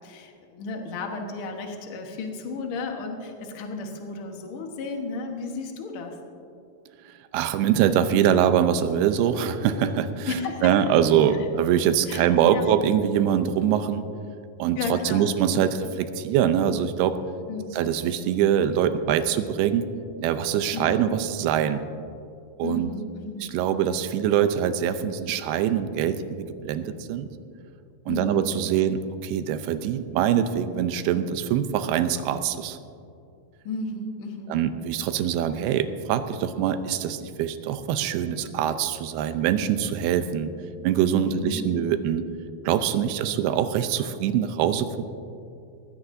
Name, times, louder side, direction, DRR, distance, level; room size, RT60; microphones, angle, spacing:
voice 1, 0.0-6.2 10.2-10.7 11.3-11.5 12.1-12.7 14.7-15.7 16.6-16.8 17.5-17.8 20.7-21.1 22.6-23.4 28.1-28.7 33.6-34.6 41.0-41.7 43.0-43.2, left 3 dB, 65° left, 2 dB, 1.3 m, -34 dB
voice 2, 7.1-10.3 10.6-14.1 14.6-17.2 17.7-19.8 20.2-21.8 22.6-22.9 23.4-27.3 28.1-32.8 34.5-40.5 40.8-42.2 42.7-45.0, right 9 dB, 85° right, 10 dB, 2.6 m, -23 dB
19.5 x 16.0 x 2.7 m, 2.5 s
omnidirectional pair, 4.5 m